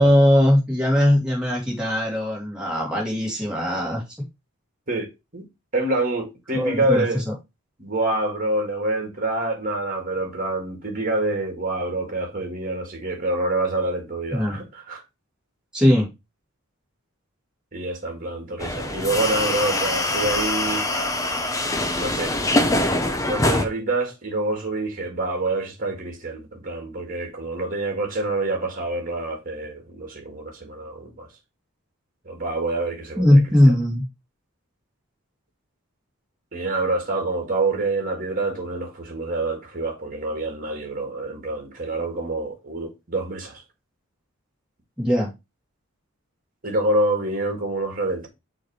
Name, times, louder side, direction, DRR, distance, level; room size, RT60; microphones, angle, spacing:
voice 1, 0.0-4.0 6.5-7.0 14.3-14.6 15.7-16.1 33.2-34.0 45.0-45.3, left 1 dB, 5° right, 2.6 m, -19 dB
voice 2, 4.9-5.4 5.7-7.2 7.8-15.0 17.7-20.9 22.0-22.3 23.2-31.3 32.3-33.4 33.7-33.8 36.5-43.6 46.6-48.3, right 2 dB, 40° right, 1.9 m, -26 dB
sound 1, 18.6-23.7, left 1 dB, 15° left, 0.6 m, -23 dB
6.3 x 3.3 x 4.7 m
head